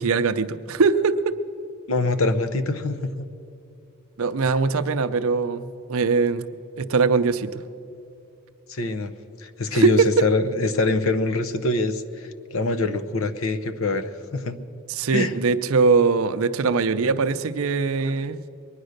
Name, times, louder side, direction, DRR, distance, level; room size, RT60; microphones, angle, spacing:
voice 1, 0.0-1.3 4.2-6.5 6.8-7.5 9.7-10.1 14.9-18.4, right 4 dB, 70° right, 11 dB, 0.6 m, -21 dB
voice 2, 1.9-3.1 8.7-9.1 9.4-14.6 15.1-15.3, left 2 dB, 65° left, 11 dB, 0.8 m, -24 dB
22.0 x 9.8 x 6.5 m, 2.6 s
head